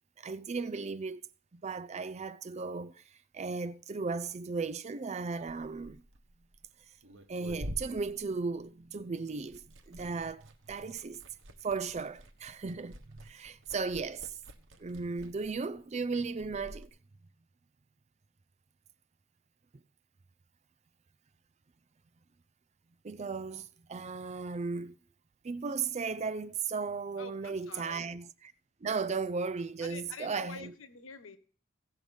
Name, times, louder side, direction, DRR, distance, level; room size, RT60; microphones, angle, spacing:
voice 1, 0.2-1.2 1.5-3.0 3.3-6.0 7.3-11.2 11.6-14.4 14.8-16.9 23.0-25.0 25.4-28.3 28.8-30.7, right 4 dB, 30° right, 0.4 m, -36 dB
Liquid, 5.4-9.0 9.3-16.9, equal, 60° right, 1.2 m, -48 dB
voice 2, 27.2-28.1 29.8-31.4, left 5 dB, 65° left, 1.3 m, -46 dB
16.5 x 6.3 x 5.3 m
head